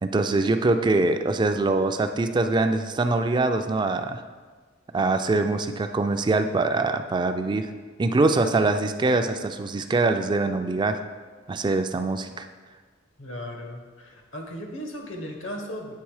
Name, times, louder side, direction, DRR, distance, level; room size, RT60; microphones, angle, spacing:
voice 1, 0.0-4.2 4.9-7.7 8.0-11.0 11.5-12.5, right 3 dB, 25° right, 8 dB, 0.3 m, -23 dB
voice 2, 13.2-15.9, equal, 75° left, 2 dB, 1.0 m, -36 dB
8.4 x 3.5 x 4.7 m, 1.4 s
head